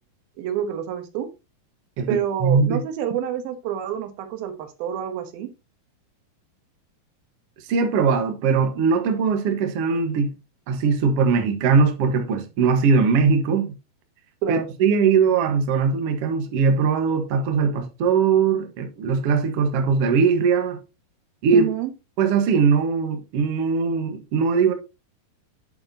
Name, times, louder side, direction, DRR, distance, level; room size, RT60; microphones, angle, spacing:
voice 1, 0.4-1.3 2.1-5.5 14.4-14.7 21.5-21.9, right 10 dB, 75° right, 2.9 m, -27 dB
voice 2, 2.0-2.8 7.7-10.3 10.7-13.7 14.5-20.8 21.4-21.7 22.2-24.7, right 5 dB, 60° right, 1.6 m, -20 dB
8.8 x 7.8 x 2.7 m
omnidirectional pair, 4.4 m